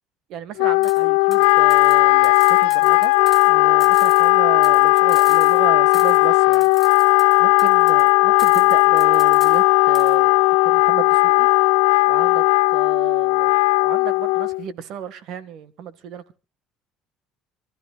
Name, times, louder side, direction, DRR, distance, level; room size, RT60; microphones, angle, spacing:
voice 1, 0.3-3.1 3.4-6.7 7.4-11.5 12.1-16.4, right 8 dB, 65° right, 1.7 m, -33 dB
Wind instrument woodwind instrument, 0.6-14.6, left 25 dB, 90° left, 0.6 m, -16 dB
sound 1, 0.8-1.0 1.3-3.5 3.8-5.7 5.9-6.3 6.5-8.1 8.4-9.6 9.9-10.2, left 3 dB, 10° left, 3.4 m, -42 dB
27.0 x 13.5 x 2.4 m
supercardioid pair, 100°, 0 cm